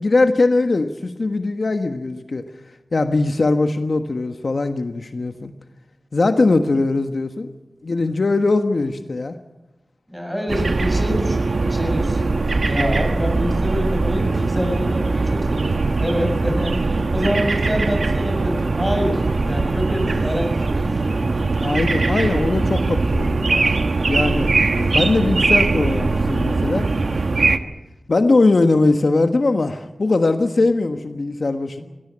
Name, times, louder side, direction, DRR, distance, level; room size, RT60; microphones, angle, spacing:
voice 1, 0.0-2.4 2.9-5.5 6.1-7.5 7.8-9.4 21.6-23.8 24.1-24.5 24.7-26.9 28.1-31.8, left 3 dB, 65° left, 7 dB, 1.3 m, -20 dB
voice 2, 10.1-12.2 12.6-21.3 31.8-31.9, equal, 5° right, 3 dB, 7.5 m, -26 dB
sound 1, 10.5-27.6, right 3 dB, 75° right, 1.2 m, -21 dB
21.0 x 17.0 x 8.8 m, 1.0 s
wide cardioid pair, 75°, 0 cm